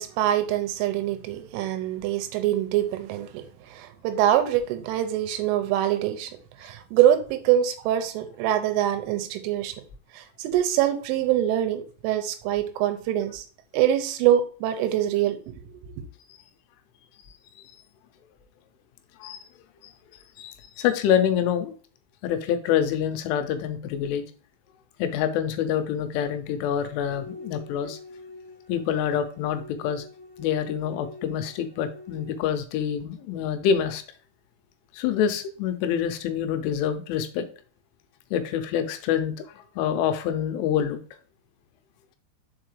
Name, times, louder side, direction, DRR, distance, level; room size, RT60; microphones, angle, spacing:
voice 1, 0.0-6.3 6.6-9.8 10.1-13.4 13.7-15.6 15.9-16.0, right 11 dB, 85° right, 3.2 m, -24 dB
voice 2, 20.4-21.7 22.2-24.2 25.0-28.0 28.7-30.0 30.4-34.0 34.9-37.5 38.3-39.3 39.8-41.0, left 8 dB, 85° left, 3.0 m, -26 dB
sound 1, 26.7-32.4, left 2 dB, 25° left, 3.3 m, -45 dB
6.6 x 4.7 x 3.1 m
omnidirectional pair, 5.7 m